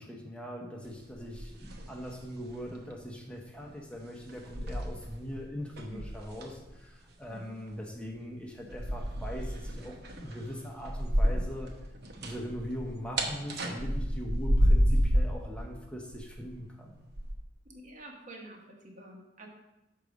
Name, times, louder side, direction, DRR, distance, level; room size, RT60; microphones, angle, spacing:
voice 1, 0.0-11.7 12.2-17.0, equal, 5° left, 0 dB, 0.9 m, -41 dB
sound 1, 1.1-2.2 2.5-2.8 3.6-3.7 4.3-5.4 5.7-6.7 8.7-11.7 12.0-15.4 16.1-16.6 17.1-17.3, equal, 60° right, 0.9 m, -29 dB
voice 2, 17.6-19.5, right 1 dB, 45° right, 0 dB, 1.3 m, -48 dB
6.7 x 4.8 x 5.1 m, 0.96 s
head